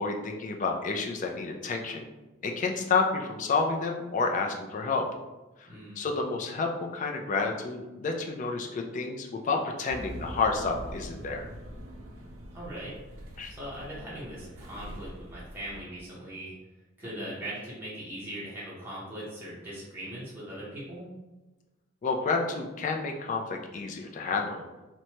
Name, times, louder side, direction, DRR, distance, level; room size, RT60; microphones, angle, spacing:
voice 1, 0.0-2.1 2.4-5.0 6.0-11.5 13.4-13.5 17.2-17.3 22.0-24.7, left 4 dB, 40° left, 2 dB, 0.3 m, -30 dB
voice 2, 5.7-6.0 12.5-13.0 13.5-16.5 17.0-21.1, right 1 dB, 10° right, -8 dB, 0.7 m, -40 dB
sound 1, 9.9-15.8, equal, 90° right, 0.5 m, -43 dB
3.0 x 2.1 x 2.7 m, 1.1 s
head